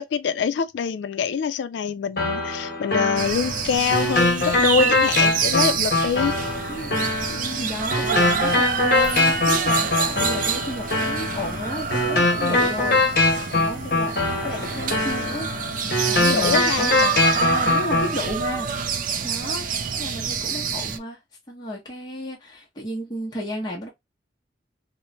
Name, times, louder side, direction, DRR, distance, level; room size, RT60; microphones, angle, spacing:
voice 1, 0.0-6.3 16.3-16.9, left 6 dB, 80° left, 0.3 m, -24 dB
sound 1, 2.2-18.1, left 2 dB, 55° left, 1.0 m, -23 dB
sound 2, 3.2-21.0, right 6 dB, 45° right, 0.4 m, -27 dB
voice 2, 6.7-7.0 7.3-14.2 14.4-15.5 15.8-19.7 19.9-21.2 21.5-23.9, equal, 20° left, 0.8 m, -33 dB
3.0 x 2.1 x 2.5 m
head